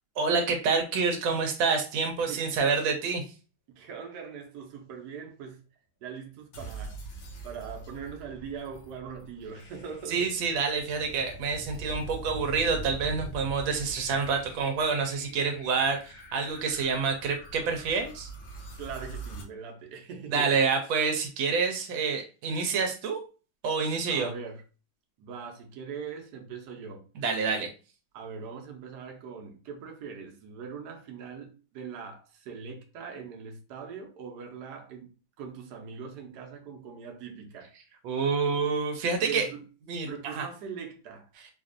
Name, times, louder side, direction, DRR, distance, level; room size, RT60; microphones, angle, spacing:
voice 1, 0.2-3.2 10.1-18.3 20.3-23.2 23.6-24.3 27.2-27.7 38.0-39.5 39.9-40.5, right 5 dB, 80° right, 1.4 m, -27 dB
voice 2, 3.8-5.6 6.0-7.0 7.4-10.3 18.8-20.6 24.1-24.6 25.2-27.1 28.1-37.7 39.3-39.6 40.1-41.3, right 6 dB, 65° right, 1.2 m, -41 dB
sound 1, 6.5-19.4, right 2 dB, 85° left, 1.6 m, -43 dB
4.2 x 2.5 x 2.5 m
omnidirectional pair, 2.1 m